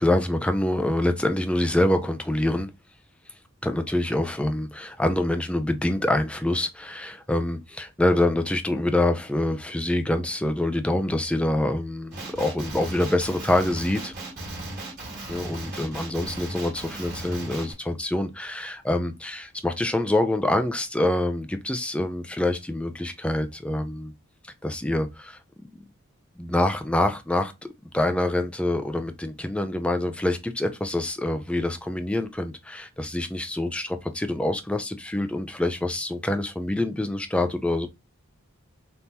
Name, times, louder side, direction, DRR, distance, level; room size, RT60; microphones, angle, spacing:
voice 1, 0.0-2.7 3.6-14.1 15.3-24.1 24.6-25.4 26.4-27.5 27.9-37.9, left 1 dB, 5° left, 0.3 m, -25 dB
Male speech man speaking, 12.1-17.7, right 2 dB, 50° right, 1.7 m, -36 dB
3.5 x 2.9 x 2.7 m
head